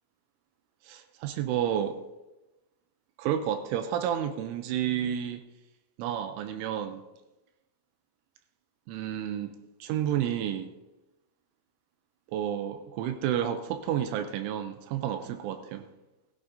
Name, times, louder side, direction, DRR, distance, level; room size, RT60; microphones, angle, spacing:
voice 1, 0.8-2.0 3.2-5.4 6.0-7.1 8.9-10.7 12.3-15.9, right 10 dB, 80° right, 8 dB, 3.0 m, -31 dB
16.0 x 15.0 x 2.6 m, 1.0 s
omnidirectional pair, 5.8 m